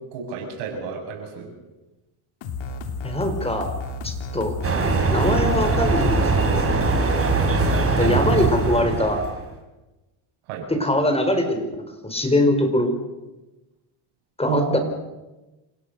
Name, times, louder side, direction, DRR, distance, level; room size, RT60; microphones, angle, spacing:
voice 1, 0.1-1.5 10.5-10.7 14.5-14.8, right 7 dB, 90° right, 2 dB, 7.2 m, -30 dB
sound 1, 2.4-8.8, left 4 dB, 60° left, 3.2 m, -32 dB
voice 2, 3.0-3.7 4.0-4.5 5.1-6.6 8.0-9.2 10.7-11.7 12.0-12.9 14.4-14.8, left 1 dB, 10° left, 7 dB, 4.8 m, -22 dB
sound 2, 4.6-9.5, right 3 dB, 25° right, 4.9 m, -21 dB
27.5 x 17.0 x 6.7 m, 1.1 s
cardioid pair, 100°, 50 cm